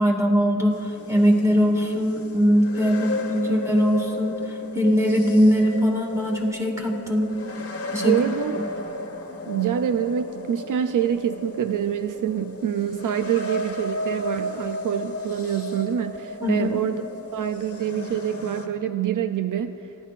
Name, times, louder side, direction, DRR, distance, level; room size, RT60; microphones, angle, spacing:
voice 1, 0.0-4.4 4.7-7.3 7.9-8.2 16.4-16.7, equal, 10° right, 0 dB, 2.0 m, -21 dB
sound 1, 0.7-18.7, left 2 dB, 45° left, 1.3 m, -34 dB
voice 2, 8.0-8.6 9.5-17.0 17.3-19.7, right 9 dB, 75° right, 9 dB, 0.5 m, -26 dB
29.0 x 11.0 x 2.5 m, 2.7 s
wide cardioid pair, 85°, 32 cm